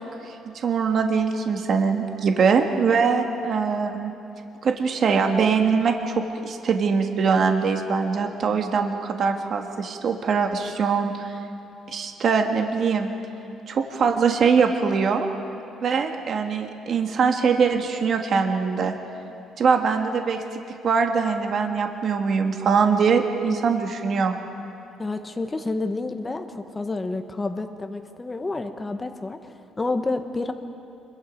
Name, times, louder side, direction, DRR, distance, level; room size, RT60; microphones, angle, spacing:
voice 1, 0.3-4.1 4.6-11.3 11.9-13.1 13.7-15.3 15.8-19.0 19.6-20.4 20.8-24.3, right 5 dB, 45° right, 4 dB, 1.5 m, -22 dB
voice 2, 25.0-30.5, left 3 dB, 15° left, 7 dB, 1.0 m, -29 dB
25.5 x 22.5 x 5.2 m, 2.8 s
cardioid pair, 150°, 0 cm